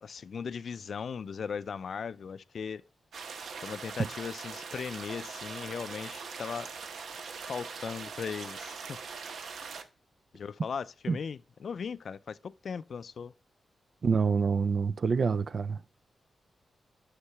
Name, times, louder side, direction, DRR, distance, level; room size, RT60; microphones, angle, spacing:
voice 1, 0.0-2.8 3.6-6.7 7.4-9.0 10.3-13.3, left 6 dB, 65° left, 0.4 m, -38 dB
Stream hybrid, 3.1-9.8, right 5 dB, 75° right, 0.8 m, -42 dB
voice 2, 14.0-15.8, right 5 dB, 55° right, 0.3 m, -27 dB
9.7 x 5.7 x 3.4 m
wide cardioid pair, 105°, 0 cm